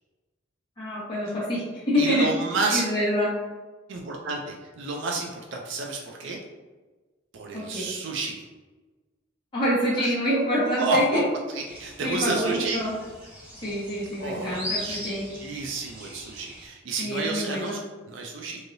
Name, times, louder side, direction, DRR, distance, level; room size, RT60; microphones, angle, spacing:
voice 1, 0.8-3.3 7.5-7.9 9.5-11.2 12.0-12.9 13.6-15.3 17.0-17.8, equal, 25° left, -10 dB, 1.1 m, -26 dB
voice 2, 2.0-2.8 3.9-6.4 7.3-8.4 10.0-10.1 10.7-11.2 11.5-12.8 14.2-15.0 15.4-17.8 18.1-18.6, right 3 dB, 70° right, 1 dB, 0.4 m, -30 dB
sound 1, 11.7-16.7, left 1 dB, 5° right, 0.7 m, -39 dB
3.1 x 2.7 x 2.6 m, 1.3 s
head